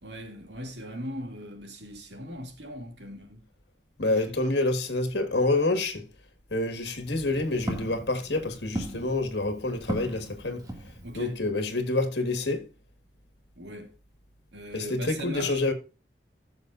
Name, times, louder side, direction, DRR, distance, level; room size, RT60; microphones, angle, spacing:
voice 1, 0.0-3.4 4.1-4.5 11.0-11.4 13.6-13.9 14.5-15.6, equal, 80° right, 2.4 m, -39 dB
voice 2, 4.0-6.0 6.5-10.6 11.1-12.7 14.7-15.7, left 2 dB, 75° left, 1.7 m, -27 dB
Walk footsteps, 6.8-11.4, right 1 dB, 20° right, 2.2 m, -38 dB
15.0 x 6.8 x 2.6 m
head